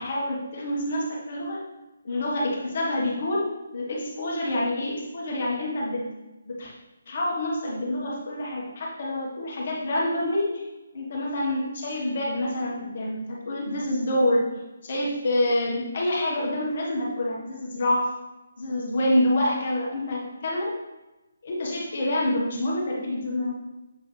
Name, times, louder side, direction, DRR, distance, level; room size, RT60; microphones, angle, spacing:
voice 1, 0.0-1.6 2.0-6.1 6.5-6.7 7.1-10.6 10.9-18.1 18.6-20.8 21.4-23.5, left 1 dB, 50° left, -3 dB, 1.7 m, -27 dB
7.8 x 4.7 x 3.4 m, 1.0 s
figure-of-eight pair, 145°, 0 cm